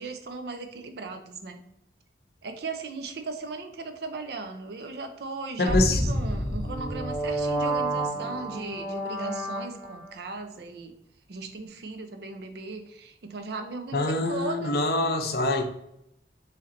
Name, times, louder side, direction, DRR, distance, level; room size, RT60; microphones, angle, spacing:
voice 1, 0.0-1.6 2.4-10.9 11.3-14.8, right 3 dB, 65° right, 6 dB, 0.5 m, -37 dB
voice 2, 5.6-6.0 13.9-15.6, left 2 dB, 55° left, 5 dB, 0.5 m, -25 dB
sound 1, 5.7-10.1, right 1 dB, ahead, 0.7 m, -29 dB
3.2 x 2.8 x 3.7 m, 0.79 s
head